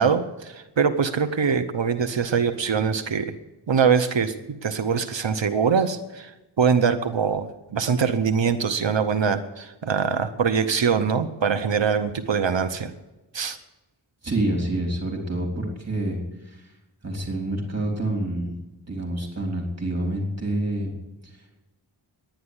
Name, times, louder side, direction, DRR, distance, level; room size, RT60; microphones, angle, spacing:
voice 1, 0.0-3.3 3.7-4.3 4.6-6.3 6.6-12.9 13.3-13.6, right 6 dB, 65° right, 9 dB, 1.0 m, -23 dB
voice 2, 14.2-16.7 17.0-18.5 18.9-20.9 21.2-21.4, right 1 dB, 30° right, 0 dB, 3.6 m, -27 dB
11.0 x 10.5 x 9.6 m, 1.0 s
wide cardioid pair, 80°, 48 cm